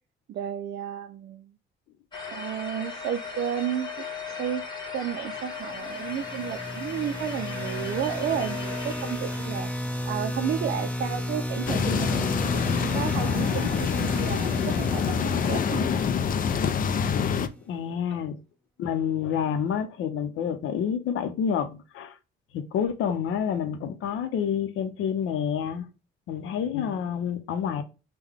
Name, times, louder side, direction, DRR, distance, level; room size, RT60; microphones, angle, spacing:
voice 1, 0.3-1.5 2.3-4.6 4.9-16.0 18.1-18.2, right 9 dB, 60° right, 0.4 m, -32 dB
sound 1, 2.1-9.6, left 5 dB, 20° left, 1.3 m, -37 dB
sound 2, 5.6-17.4, equal, 5° left, 0.9 m, -33 dB
sound 3, 11.7-17.5, left 7 dB, 45° left, 0.4 m, -26 dB
voice 2, 17.7-18.4 18.8-22.1 22.5-25.9 26.3-27.8, left 8 dB, 80° left, 0.7 m, -28 dB
3.7 x 2.2 x 3.4 m
cardioid pair, 90°, 20 cm